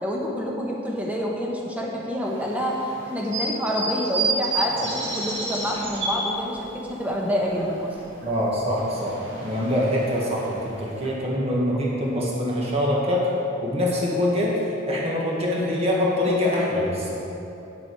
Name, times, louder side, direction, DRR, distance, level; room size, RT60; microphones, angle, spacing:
voice 1, 0.0-2.8 3.1-7.9, equal, 10° right, -2 dB, 1.1 m, -27 dB
sound 1, 2.3-6.8 7.1-8.3 8.5-11.1, right 2 dB, 70° right, 2.2 m, -31 dB
voice 2, 8.2-13.3 13.6-17.2, left 1 dB, 30° right, -4 dB, 1.7 m, -24 dB
8.9 x 7.7 x 4.7 m, 2.9 s
head